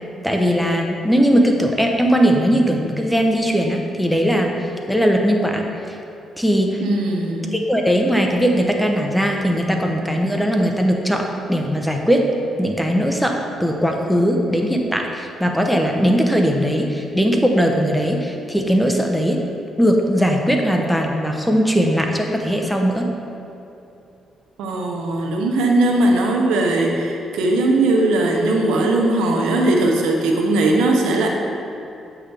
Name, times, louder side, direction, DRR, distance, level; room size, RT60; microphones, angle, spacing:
voice 1, 0.2-4.5 4.9-6.0 6.4-6.8 7.5-12.2 12.6-19.4 19.8-23.1, equal, ahead, 2 dB, 0.8 m, -19 dB
voice 2, 6.8-7.6 24.6-31.3, right 2 dB, 90° right, 1 dB, 0.8 m, -19 dB
8.0 x 6.0 x 3.4 m, 2.8 s
cardioid pair, 90°, 0 cm